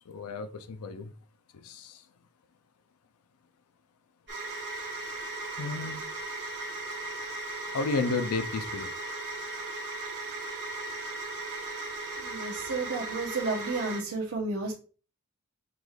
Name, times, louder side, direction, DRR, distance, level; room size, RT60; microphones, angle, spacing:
voice 1, 0.1-1.1 1.5-2.1 5.6-6.1 7.7-8.9, left 3 dB, 75° left, 0.5 m, -32 dB
sound 1, 4.3-14.0, right 2 dB, 50° right, 1.3 m, -37 dB
voice 2, 12.2-14.7, right 3 dB, 90° right, 0.8 m, -32 dB
5.9 x 3.2 x 2.3 m
head